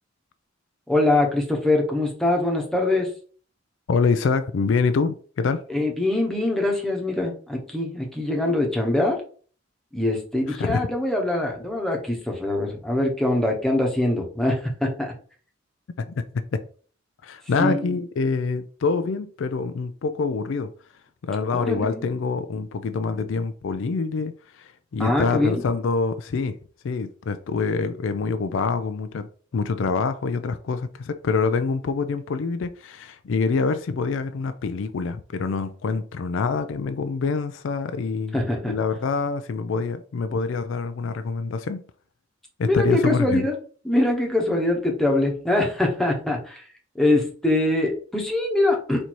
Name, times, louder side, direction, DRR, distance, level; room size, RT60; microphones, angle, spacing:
voice 1, 0.9-3.1 5.7-9.2 9.9-15.1 17.6-18.0 21.5-22.0 25.0-25.6 38.3-38.8 42.6-43.5 43.8-46.6 46.9-49.1, left 2 dB, ahead, 1.0 m, -23 dB
voice 2, 3.9-5.6 10.5-10.9 16.0-16.6 17.2-20.7 21.2-26.6 26.8-29.3 29.5-41.8 42.6-43.4, left 4 dB, 65° left, 0.4 m, -26 dB
4.3 x 2.7 x 4.5 m
head